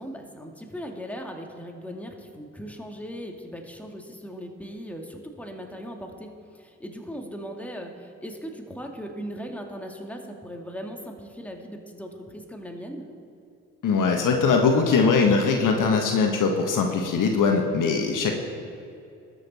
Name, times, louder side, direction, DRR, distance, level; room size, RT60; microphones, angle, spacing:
voice 1, 0.0-6.3 6.6-13.1, equal, 5° left, 2 dB, 2.2 m, -38 dB
voice 2, 13.8-18.3, left 5 dB, 60° left, 3 dB, 1.4 m, -21 dB
20.0 x 6.8 x 4.2 m, 2.6 s
hypercardioid pair, 40°, 36 cm